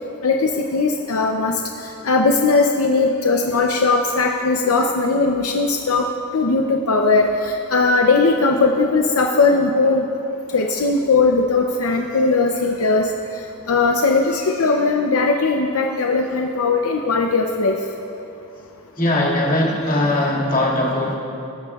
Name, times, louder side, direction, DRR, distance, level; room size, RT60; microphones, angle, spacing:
voice 1, 0.2-6.1 6.3-10.1 10.5-13.1 13.7-17.8, left 3 dB, 75° left, 2 dB, 0.7 m, -19 dB
voice 2, 19.0-21.2, left 1 dB, 40° left, -4 dB, 2.2 m, -20 dB
21.0 x 12.0 x 2.4 m, 2.7 s
head